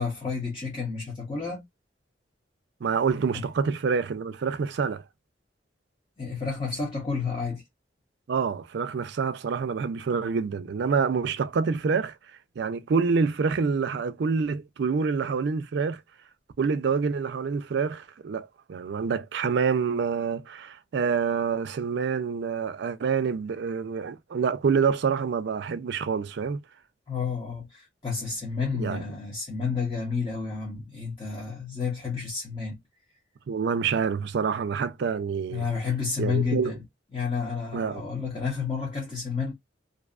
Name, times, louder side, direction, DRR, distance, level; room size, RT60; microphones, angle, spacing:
voice 1, 0.0-1.6 3.3-3.4 6.2-7.6 27.1-32.8 35.5-36.8 37.1-39.5, left 5 dB, 25° left, 0.8 m, -30 dB
voice 2, 2.8-5.0 8.3-12.2 12.6-16.0 16.6-26.6 28.7-29.0 33.5-35.6 36.2-36.7 37.7-38.0, right 5 dB, 60° right, 0.4 m, -27 dB
2.6 x 2.3 x 2.3 m
head